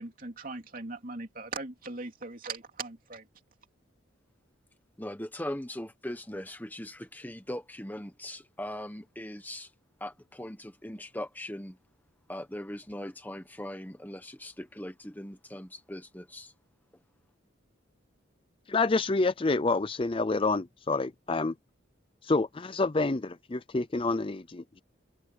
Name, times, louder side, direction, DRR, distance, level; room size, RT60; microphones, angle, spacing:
voice 1, 0.0-3.3, right 3 dB, 45° right, 3.1 m, -39 dB
voice 2, 5.0-9.7 10.0-11.8 12.3-16.5, left 1 dB, 10° left, 1.2 m, -40 dB
voice 3, 18.7-21.5 22.2-24.8, left 3 dB, 25° left, 0.5 m, -28 dB
head